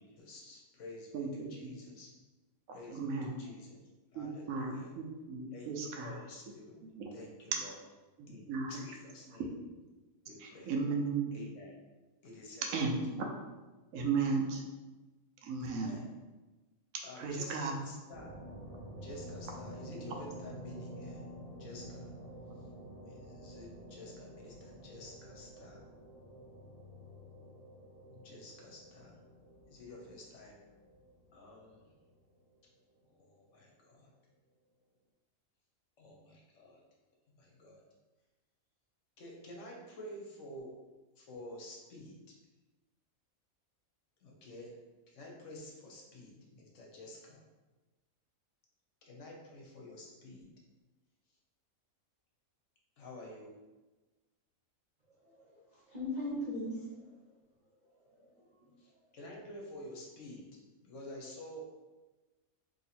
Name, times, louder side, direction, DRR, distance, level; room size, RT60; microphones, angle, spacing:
voice 1, 0.0-2.1 2.7-3.8 4.1-4.9 5.5-6.8 7.1-7.8 8.3-9.5 10.2-10.7 11.3-11.7 12.2-12.9 15.6-16.1 17.0-18.4 19.0-21.2 21.6-22.1 23.1-25.8 28.1-29.2 29.7-30.6 31.3-31.9 33.1-34.1 36.0-36.8 37.4-37.8 39.2-40.8 41.2-42.2 44.2-44.8 45.1-47.4 49.0-50.5 53.0-53.5 58.8-61.6, left 1 dB, 65° left, -1 dB, 1.1 m, -50 dB
voice 2, 1.1-1.7 2.7-3.4 4.1-6.2 6.9-7.1 8.2-8.7 9.3-9.5 10.4-11.3 12.7-13.3 13.9-14.6 15.4-16.0 17.2-17.8, right 4 dB, 80° right, 1 dB, 1.0 m, -35 dB
sound 1, 18.1-32.5, equal, 50° left, 0.4 m, -49 dB
voice 3, 55.1-57.2 57.7-57.8 58.0-58.7, left 1 dB, 35° right, -8 dB, 0.8 m, -41 dB
3.0 x 2.8 x 4.2 m, 1.2 s
omnidirectional pair, 1.4 m